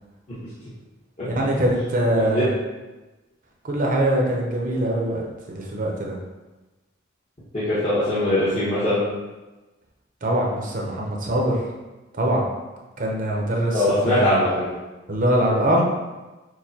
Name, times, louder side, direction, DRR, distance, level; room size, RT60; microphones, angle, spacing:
voice 1, 1.2-2.5 3.6-5.2 5.5-6.2 10.2-11.6 12.1-12.4 13.0-14.4 15.1-15.8, right 1 dB, 45° right, -2 dB, 0.7 m, -22 dB
voice 2, 2.2-2.5 7.5-9.0 13.7-14.7, left 1 dB, 35° left, -12 dB, 1.0 m, -21 dB
6.3 x 2.1 x 2.8 m, 1.2 s
head